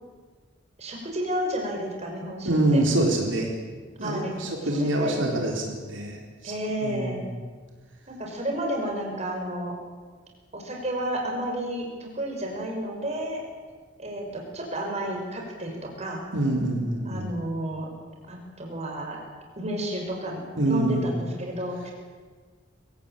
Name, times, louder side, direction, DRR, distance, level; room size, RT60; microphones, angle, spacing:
voice 1, 0.8-2.8 4.0-4.4 4.7-5.4 6.4-7.3 8.1-9.7 10.5-13.4 14.0-16.2 17.0-17.9 18.3-19.2 19.6-21.9, right 1 dB, 35° right, 0 dB, 5.9 m, -31 dB
voice 2, 2.5-3.5 4.0-6.5 6.8-7.3 16.3-17.3 20.6-21.2, right 1 dB, 75° right, 0 dB, 4.0 m, -25 dB
24.5 x 17.0 x 9.0 m, 1.5 s
head